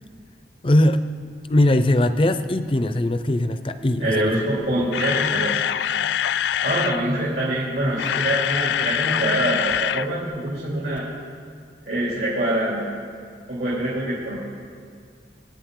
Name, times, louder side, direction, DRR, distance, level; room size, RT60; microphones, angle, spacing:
voice 1, 0.6-1.0 1.5-4.4, left 1 dB, 30° left, 10 dB, 0.5 m, -20 dB
voice 2, 4.0-5.6 6.6-11.0 11.9-12.8 13.5-14.4, right 1 dB, 75° right, -7 dB, 3.1 m, -24 dB
Camera, 4.6-7.0 7.8-10.1 10.3-10.5 11.0-11.1, left 10 dB, 80° left, 0.3 m, -24 dB
25.0 x 9.2 x 3.8 m, 2.2 s
head